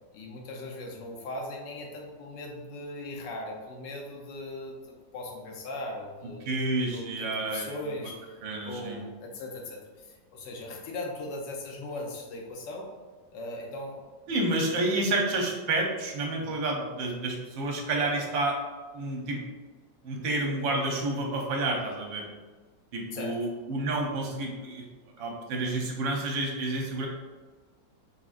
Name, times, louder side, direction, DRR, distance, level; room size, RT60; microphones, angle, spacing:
voice 1, 0.1-6.6 6.9-8.3 8.6-12.9 13.3-14.0 16.3-16.6 23.1-23.4, left 2 dB, 70° left, 0 dB, 1.4 m, -39 dB
voice 2, 6.5-7.8 8.4-9.0 14.3-18.6 18.9-19.4 20.0-22.2 22.9-24.8 25.2-27.1, right 2 dB, 80° right, 0 dB, 1.6 m, -29 dB
4.5 x 4.2 x 2.5 m, 1.3 s
omnidirectional pair, 2.0 m